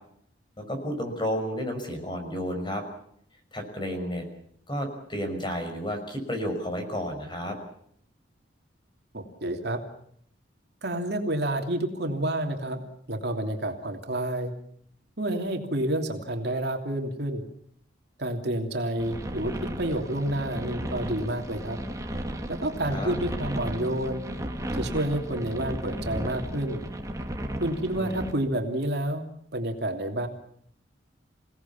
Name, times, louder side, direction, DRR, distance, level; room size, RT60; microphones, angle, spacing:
voice 1, 0.6-2.8 3.5-4.2 4.7-7.6 22.9-23.2 28.0-28.1, equal, 25° left, 6 dB, 5.8 m, -31 dB
voice 2, 9.1-9.8 10.8-12.8 13.1-14.5 15.2-17.4 18.2-19.5 19.8-21.8 22.5-24.2 24.7-26.8 27.6-29.2 29.5-30.3, right 1 dB, 60° right, 4 dB, 2.9 m, -29 dB
sound 1, 19.0-28.3, equal, 20° right, 2.2 m, -34 dB
28.0 x 18.0 x 7.3 m, 0.68 s
head